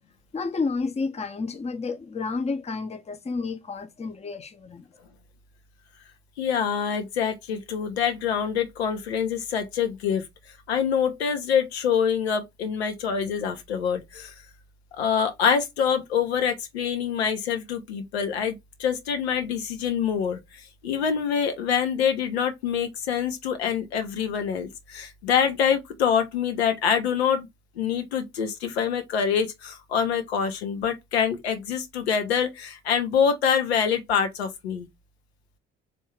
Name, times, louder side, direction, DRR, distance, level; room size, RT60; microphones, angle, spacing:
voice 1, 0.3-4.8, left 4 dB, 20° left, 0.7 m, -30 dB
voice 2, 6.4-10.3 10.7-14.3 14.9-27.5 27.8-34.9, left 7 dB, 80° left, 0.8 m, -25 dB
3.6 x 2.3 x 4.3 m
figure-of-eight pair, 50°, 31 cm